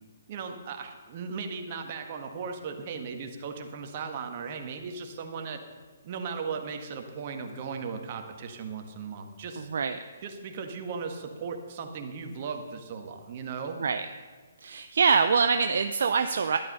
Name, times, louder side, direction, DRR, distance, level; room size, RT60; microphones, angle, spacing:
voice 1, 0.3-5.6 6.0-9.7 10.2-13.8, right 5 dB, 40° right, 4 dB, 1.6 m, -37 dB
voice 2, 9.6-10.0 13.8-14.0 14.6-16.6, right 5 dB, 65° right, 8 dB, 0.5 m, -24 dB
12.0 x 11.0 x 5.5 m, 1.5 s
figure-of-eight pair, 135°, 0 cm